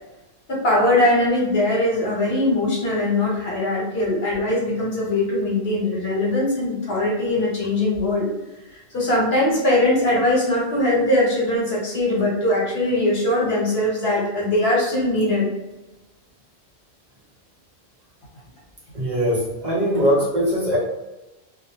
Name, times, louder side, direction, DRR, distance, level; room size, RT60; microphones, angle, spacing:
voice 1, 0.5-8.3 8.7-15.5, left 1 dB, 65° left, -5 dB, 1.1 m, -21 dB
voice 2, 18.9-20.8, equal, 45° right, -6 dB, 0.8 m, -21 dB
2.3 x 2.0 x 2.9 m, 1.0 s
omnidirectional pair, 1.1 m